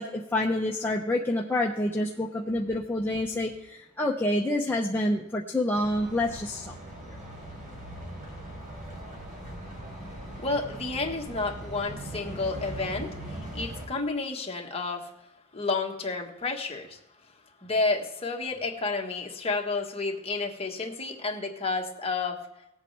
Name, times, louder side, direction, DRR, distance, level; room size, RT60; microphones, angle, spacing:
voice 1, 0.0-6.8, left 1 dB, 10° left, -1 dB, 0.7 m, -28 dB
sound 1, 5.7-13.9, right 1 dB, 40° right, 3.8 m, -40 dB
voice 2, 10.4-15.1 15.5-17.0 17.6-22.5, left 3 dB, 30° left, 2 dB, 1.4 m, -31 dB
19.0 x 8.1 x 3.3 m, 0.89 s
head